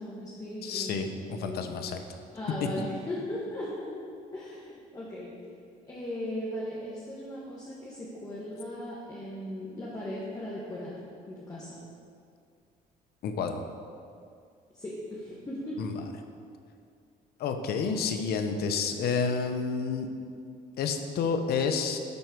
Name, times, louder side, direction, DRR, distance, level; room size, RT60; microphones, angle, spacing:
voice 1, 0.0-1.8 2.3-3.9 4.3-5.3 5.9-10.9 11.3-11.8 14.7-15.8, left 1 dB, 20° left, -7 dB, 1.8 m, -38 dB
voice 2, 0.6-2.0 13.2-13.6 15.8-15.9 17.4-20.1 20.8-22.0, left 5 dB, 70° left, 6 dB, 0.9 m, -29 dB
11.0 x 4.5 x 6.2 m, 2.3 s
cardioid pair, 110°, 17 cm